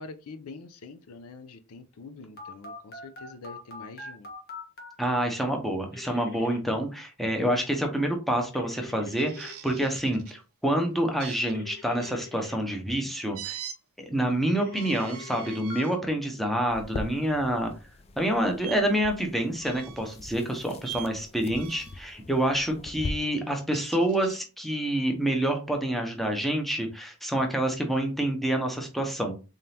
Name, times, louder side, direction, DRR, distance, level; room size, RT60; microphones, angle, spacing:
voice 1, 0.0-4.3, left 3 dB, 80° left, 0.5 m, -45 dB
Telephone, 2.4-4.9 5.9-6.6 8.5-9.5 11.5-12.6 14.6-15.8, left 4 dB, 45° left, 1.2 m, -43 dB
voice 2, 5.0-13.6 14.1-17.7 18.2-29.3, right 1 dB, ahead, 0.7 m, -27 dB
sound 1, 9.2-10.4 11.2-12.2 13.3-13.8 14.6-16.0 16.6-16.8 18.6-18.8 19.6-20.2 20.8-21.1 21.5-22.0 23.5-24.4, right 11 dB, 70° right, 0.6 m, -42 dB
sound 2, 16.7-23.1, left 2 dB, 30° left, 0.3 m, -41 dB
3.8 x 3.6 x 2.8 m
head